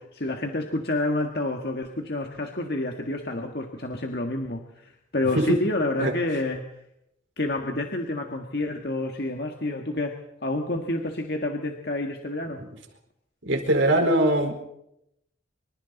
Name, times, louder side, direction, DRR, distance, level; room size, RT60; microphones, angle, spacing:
voice 1, 0.0-6.7 7.4-12.6, left 2 dB, 55° left, 3 dB, 1.8 m, -29 dB
voice 2, 13.4-14.5, right 1 dB, 85° right, 4 dB, 4.4 m, -21 dB
25.5 x 25.5 x 4.1 m, 0.78 s
head